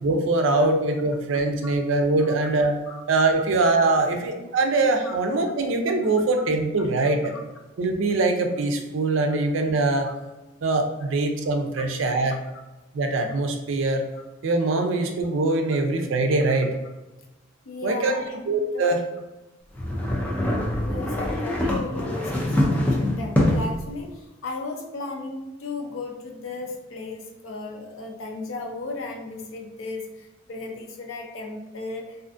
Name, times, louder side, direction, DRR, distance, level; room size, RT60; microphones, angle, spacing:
voice 1, 0.0-2.8 3.1-7.4 7.8-10.1 10.6-12.4 12.9-14.1 14.4-16.8 17.8-19.0, right 2 dB, 75° right, 4 dB, 0.4 m, -23 dB
voice 2, 17.7-18.9 20.8-32.2, left 3 dB, 85° left, 2 dB, 0.5 m, -35 dB
sound 1, 19.7-23.8, left 1 dB, 10° left, 0.4 m, -24 dB
2.4 x 2.4 x 2.4 m, 1.1 s
head